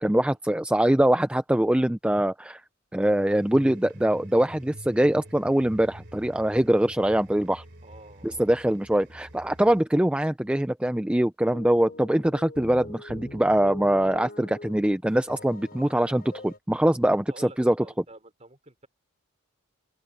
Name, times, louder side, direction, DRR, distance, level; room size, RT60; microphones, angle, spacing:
voice 1, 0.0-2.6 2.9-7.6 8.2-17.8, right 1 dB, 5° right, 0.4 m, -23 dB
sound 1, 3.0-9.8, right 1 dB, 55° right, 3.3 m, -47 dB
voice 2, 7.8-8.5 17.0-18.9, right 2 dB, 30° right, 4.3 m, -49 dB
sound 2, 11.5-14.8 15.1-16.6, left 1 dB, 45° left, 5.9 m, -43 dB
open air
head